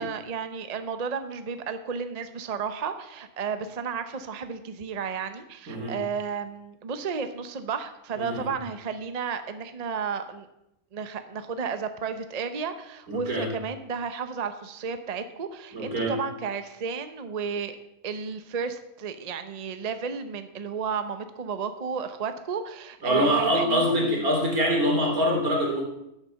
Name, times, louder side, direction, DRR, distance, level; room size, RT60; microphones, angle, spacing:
voice 1, 0.0-10.5 10.9-17.8 18.0-24.3, right 6 dB, 35° right, 9 dB, 0.7 m, -33 dB
voice 2, 13.1-13.5 15.7-16.2 23.0-25.8, equal, 80° right, 0 dB, 3.6 m, -24 dB
11.5 x 7.5 x 7.0 m, 0.83 s
omnidirectional pair, 1.5 m